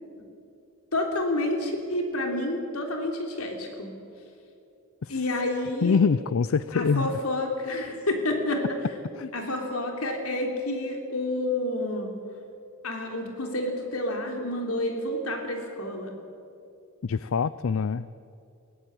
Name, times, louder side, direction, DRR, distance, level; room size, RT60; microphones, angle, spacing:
voice 1, 0.9-3.9 5.1-6.0 6.7-8.6 9.3-12.1 12.8-16.1, left 1 dB, 85° left, 3 dB, 3.5 m, -29 dB
voice 2, 5.8-7.2 9.1-9.3 17.0-18.1, left 5 dB, 70° left, 16 dB, 0.4 m, -25 dB
21.5 x 16.5 x 8.9 m, 2.5 s
head